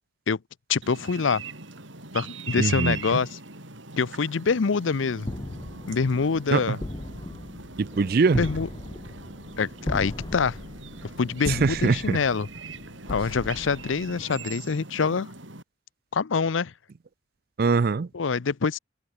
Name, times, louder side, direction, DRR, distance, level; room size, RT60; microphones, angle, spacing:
voice 1, 0.7-1.4 2.1-3.3 4.0-5.3 5.9-6.8 8.4-8.7 9.6-10.6 11.2-12.5 13.1-15.3 16.1-16.7 18.1-18.8, left 5 dB, 80° left, 0.6 m, -25 dB
sound 1, 0.8-15.6, right 4 dB, 75° right, 7.1 m, -41 dB
voice 2, 2.6-3.2 6.5-6.6 7.8-8.5 11.5-12.2 17.6-18.1, right 4 dB, 50° right, 0.4 m, -23 dB
sound 2, 5.2-14.5, left 1 dB, 20° left, 0.5 m, -38 dB
head